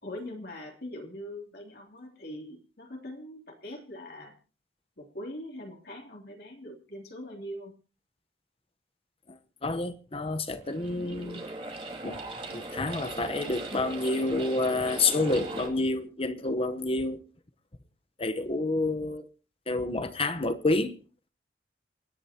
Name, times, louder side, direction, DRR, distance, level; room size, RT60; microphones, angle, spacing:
voice 1, 0.0-4.4 5.0-7.7, left 1 dB, 60° left, 3.2 m, -42 dB
voice 2, 9.3-11.4 12.0-12.2 12.5-17.2 18.2-19.2 19.7-21.0, left 2 dB, 35° left, 1.1 m, -29 dB
sound 1, 10.6-15.7, right 2 dB, 30° right, 2.6 m, -39 dB
28.0 x 10.5 x 2.9 m
head